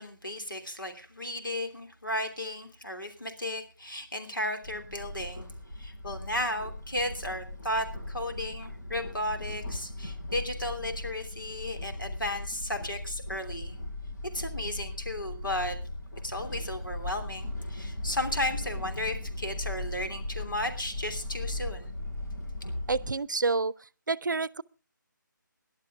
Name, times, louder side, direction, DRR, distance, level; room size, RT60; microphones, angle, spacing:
voice 1, 0.0-13.8 14.3-15.8 16.2-22.0, left 1 dB, 85° left, 3.0 m, -34 dB
sound 1, 4.6-23.1, left 2 dB, 60° left, 7.0 m, -38 dB
voice 2, 22.9-23.7 24.1-24.6, right 4 dB, 65° right, 0.6 m, -28 dB
18.5 x 11.5 x 3.6 m
figure-of-eight pair, 150°, 11 cm